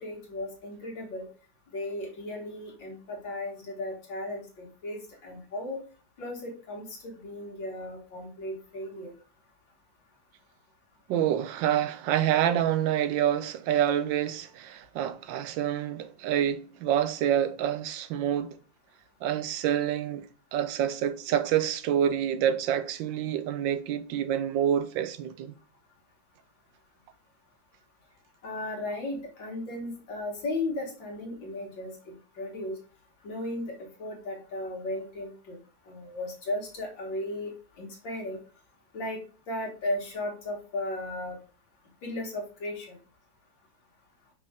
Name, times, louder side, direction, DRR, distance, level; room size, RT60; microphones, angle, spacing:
voice 1, 0.0-1.3 1.7-5.8 6.2-9.1 28.4-31.9 32.4-32.8 33.2-33.7 34.0-35.6 35.9-37.5 37.8-38.4 38.9-39.2 39.5-41.4 42.0-43.0, left 1 dB, 80° left, 2.2 m, -35 dB
voice 2, 11.1-18.6 19.2-20.2 20.5-25.5, right 10 dB, 80° right, 1.4 m, -27 dB
5.5 x 5.0 x 3.5 m
omnidirectional pair, 2.0 m